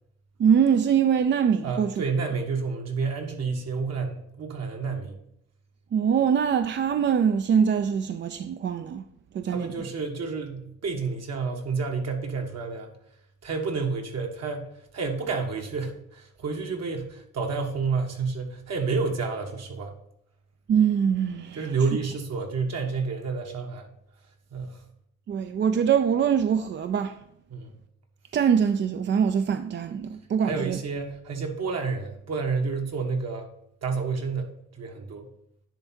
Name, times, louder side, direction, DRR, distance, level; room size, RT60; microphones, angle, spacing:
voice 1, 0.4-1.9 5.9-9.0 9.3-9.7 20.7-21.6 25.3-27.1 28.3-30.8, right 7 dB, 40° right, 0.4 m, -23 dB
voice 2, 1.6-5.2 9.5-12.9 13.4-19.9 21.5-23.9 24.5-24.8 27.5-27.7 30.4-33.5 33.8-35.3, right 4 dB, 55° right, 1.4 m, -30 dB
10.0 x 3.5 x 4.4 m
cardioid pair, 90°, 30 cm